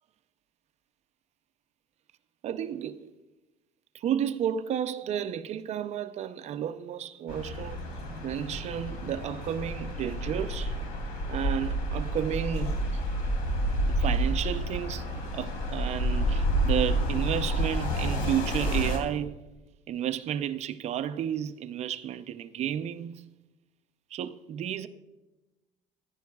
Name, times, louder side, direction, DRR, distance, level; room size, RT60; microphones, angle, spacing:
voice 1, 2.4-3.1 3.9-7.9 8.2-10.8 11.3-13.0 13.9-19.4 19.9-23.3 24.1-24.9, right 9 dB, 50° right, 0.6 m, -32 dB
sound 1, 7.3-19.0, right 1 dB, 75° left, 2.9 m, -29 dB
15.0 x 10.5 x 2.3 m
cardioid pair, 115°, 15 cm